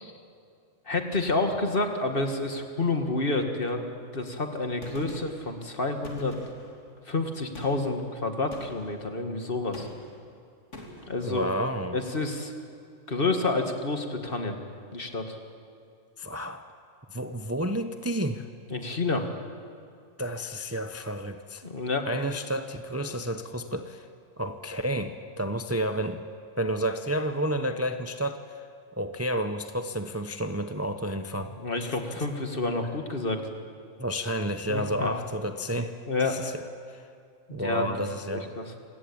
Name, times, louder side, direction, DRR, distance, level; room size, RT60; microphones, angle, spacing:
voice 1, 0.9-6.3 7.1-9.9 11.1-11.5 11.9-12.5 13.1-14.6 14.9-15.4 18.7-19.3 21.6-22.1 31.4-33.4 34.7-35.1 36.1-36.4 37.5-37.9 38.3-38.7, left 3 dB, 45° left, 5 dB, 2.1 m, -29 dB
Gunshot gunfire, 4.8-5.5 6.0-6.8 7.5-8.0 8.5-9.0 9.7-10.2 10.7-11.1, left 1 dB, 75° left, 3.3 m, -44 dB
voice 2, 11.2-12.0 16.2-16.6 17.1-18.4 20.2-21.6 22.1-24.1 24.4-26.2 26.6-28.7 29.0-31.5 31.8-31.9 34.0-35.9 36.2-36.6 36.9-37.0 37.5-38.5, equal, 15° right, 7 dB, 0.7 m, -30 dB
27.5 x 16.5 x 8.8 m, 2.4 s
omnidirectional pair, 1.3 m